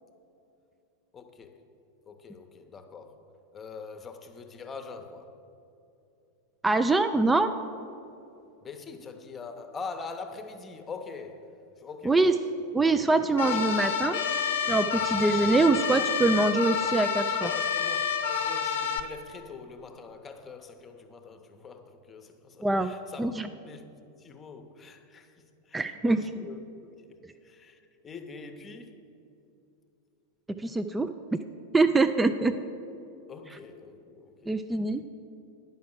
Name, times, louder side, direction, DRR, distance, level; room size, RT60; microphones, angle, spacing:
voice 1, 1.1-1.6 2.1-3.2 3.5-5.4 8.6-12.4 16.8-16.9 17.4-18.1 18.4-23.9 24.2-26.9 27.4-29.0 33.3-34.6, left 4 dB, 20° left, 0.8 m, -44 dB
voice 2, 6.6-7.5 12.0-12.3 12.7-14.2 14.7-17.5 22.6-22.9 23.2-23.5 25.7-26.2 30.6-31.1 31.7-32.6 34.5-35.0, right 3 dB, 10° right, 0.3 m, -24 dB
sound 1, 13.4-19.0, left 7 dB, 55° left, 0.7 m, -28 dB
10.0 x 5.7 x 7.5 m
figure-of-eight pair, 90°, 0 cm